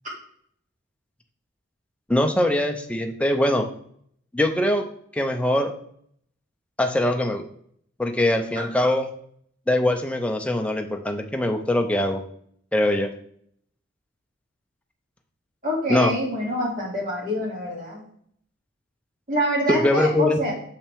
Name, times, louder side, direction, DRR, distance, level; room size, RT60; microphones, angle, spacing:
voice 1, 2.1-3.6 4.3-4.9 5.1-5.7 6.8-7.4 8.0-9.1 9.7-12.2 12.7-13.1 15.9-16.1 19.7-20.4, left 1 dB, 5° left, 4 dB, 0.5 m, -22 dB
voice 2, 15.6-18.0 19.3-20.5, equal, 40° right, -5 dB, 2.3 m, -26 dB
6.6 x 5.7 x 3.4 m, 0.66 s
head